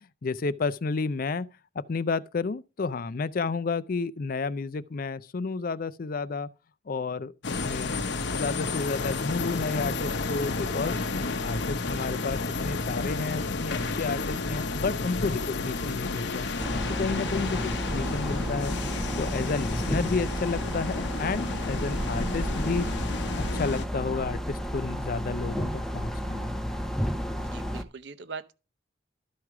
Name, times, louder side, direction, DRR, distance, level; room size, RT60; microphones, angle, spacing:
voice 1, 0.2-1.5 1.8-6.5 6.9-8.0 8.3-11.0 11.4-16.5 17.0-18.7 19.2-22.9 23.4-26.6, left 4 dB, 50° left, 0.4 m, -31 dB
sound 1, 7.4-23.9, left 3 dB, 65° left, 0.8 m, -31 dB
sound 2, 16.6-27.8, equal, ahead, 0.6 m, -32 dB
voice 2, 27.4-28.5, right 5 dB, 60° right, 0.7 m, -41 dB
12.5 x 4.7 x 4.8 m
head